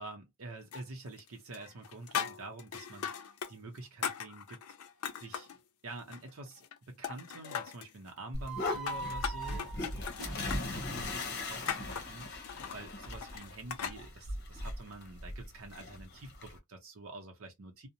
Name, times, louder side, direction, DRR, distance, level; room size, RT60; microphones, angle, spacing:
voice 1, 0.0-4.6 5.2-5.5 5.8-9.7 10.2-17.9, right 2 dB, 65° right, 0.6 m, -47 dB
sound 1, 0.7-1.3 1.5-3.5 3.8-5.6 6.0-6.8 7.0-7.9 8.5-14.0, left 8 dB, 80° left, 0.5 m, -39 dB
sound 2, 8.3-16.6, left 2 dB, 50° left, 0.8 m, -39 dB
sound 3, 8.4-11.6, right 3 dB, ahead, 0.6 m, -43 dB
2.6 x 2.0 x 2.7 m
head